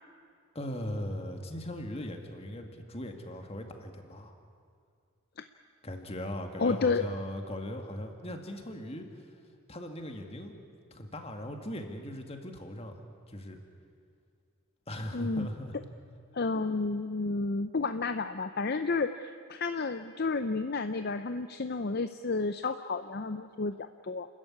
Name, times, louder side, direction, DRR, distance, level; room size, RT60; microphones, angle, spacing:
voice 1, 0.5-4.3 5.8-9.1 9.7-10.5 10.9-12.9 13.3-13.6 14.9-15.7, left 1 dB, 25° left, 5 dB, 2.1 m, -39 dB
voice 2, 6.6-7.0 15.1-15.5 16.3-24.3, left 3 dB, 45° left, 10 dB, 0.6 m, -31 dB
29.5 x 14.0 x 9.8 m, 2.2 s
head